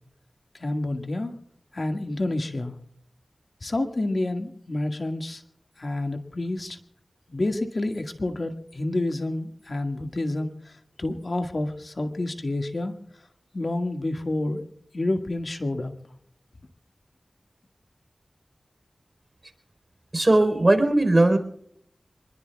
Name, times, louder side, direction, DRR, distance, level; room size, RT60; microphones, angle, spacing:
voice 1, 0.5-1.3 1.7-2.8 3.6-5.4 5.8-6.8 7.3-10.7 11.0-12.9 13.5-14.6 14.9-15.9, left 2 dB, 55° left, 4 dB, 1.9 m, -28 dB
voice 2, 20.1-21.4, right 2 dB, 40° right, 6 dB, 4.1 m, -18 dB
27.0 x 21.0 x 2.4 m, 0.66 s
wide cardioid pair, 50°, 0 cm